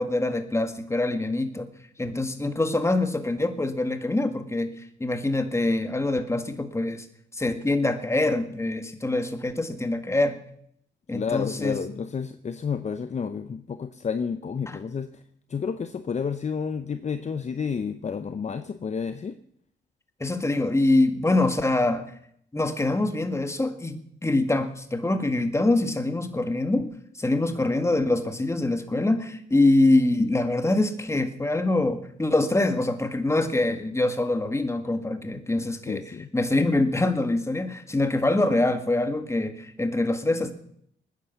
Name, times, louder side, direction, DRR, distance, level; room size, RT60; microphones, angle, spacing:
voice 1, 0.0-1.7 2.0-4.7 5.0-7.1 7.3-10.4 11.1-11.8 20.2-22.1 22.5-36.0 36.3-40.5, left 2 dB, 15° left, 8 dB, 1.9 m, -24 dB
voice 2, 11.1-15.2 15.5-19.4 35.9-36.3, left 6 dB, 35° left, 10 dB, 0.8 m, -30 dB
19.5 x 10.0 x 7.0 m, 0.69 s
cardioid pair, 90°, 19 cm